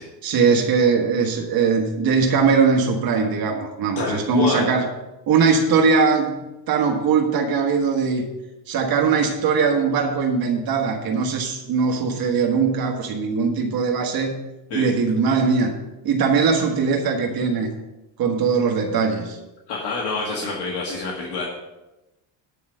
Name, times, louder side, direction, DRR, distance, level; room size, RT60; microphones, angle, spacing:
voice 1, 0.2-4.9 5.3-8.3 8.7-14.4 14.7-15.8 16.0-17.7 18.2-19.4, right 5 dB, 50° right, 2 dB, 1.4 m, -20 dB
voice 2, 4.0-4.7 14.7-14.9 19.7-21.5, left 3 dB, 60° left, -3 dB, 1.9 m, -27 dB
10.0 x 4.8 x 7.5 m, 1.0 s
cardioid pair, 165°, 45 cm